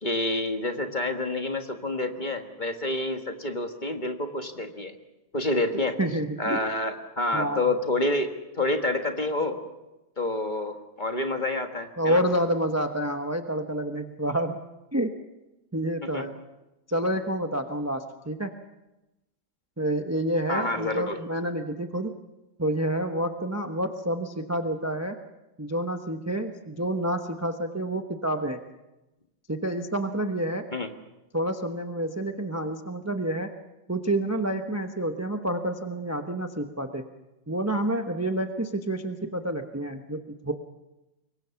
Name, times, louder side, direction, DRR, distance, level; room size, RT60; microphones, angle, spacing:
voice 1, 0.0-4.9 5.3-6.0 6.4-9.6 10.2-12.2 16.1-16.2 20.5-21.2 30.7-30.9, left 2 dB, 25° left, 5 dB, 1.5 m, -28 dB
voice 2, 6.0-6.6 7.3-7.7 12.0-14.6 14.9-15.1 15.7-16.4 16.9-18.5 19.8-22.1 22.6-25.1 25.6-28.6 29.5-30.6 31.3-33.5 33.9-37.0 37.5-40.5, right 1 dB, 15° right, 5 dB, 0.7 m, -28 dB
26.0 x 22.5 x 5.8 m, 0.99 s
omnidirectional pair, 2.1 m